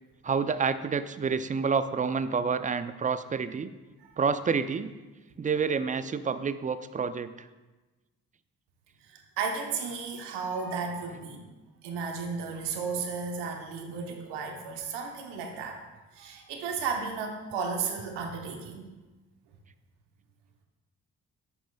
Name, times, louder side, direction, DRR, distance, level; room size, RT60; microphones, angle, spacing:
voice 1, 0.2-3.7 4.2-4.9 5.4-7.5, right 5 dB, 20° right, 13 dB, 0.3 m, -28 dB
voice 2, 9.0-11.5 11.8-18.9, right 5 dB, 85° right, 3 dB, 0.9 m, -34 dB
8.8 x 6.1 x 2.2 m, 1.2 s
hypercardioid pair, 45°, 40 cm